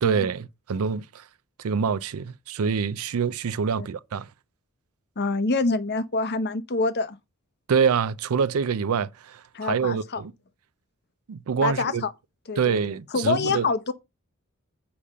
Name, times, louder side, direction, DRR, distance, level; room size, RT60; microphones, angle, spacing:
voice 1, 0.0-1.3 1.6-4.3 7.7-10.3 11.3-12.0 12.6-13.7, right 6 dB, 70° right, 0.4 m, -26 dB
voice 2, 5.2-7.2 9.5-10.2 11.6-12.1 12.5-12.8 13.1-13.9, left 3 dB, 50° left, 0.9 m, -26 dB
7.0 x 5.0 x 5.4 m
head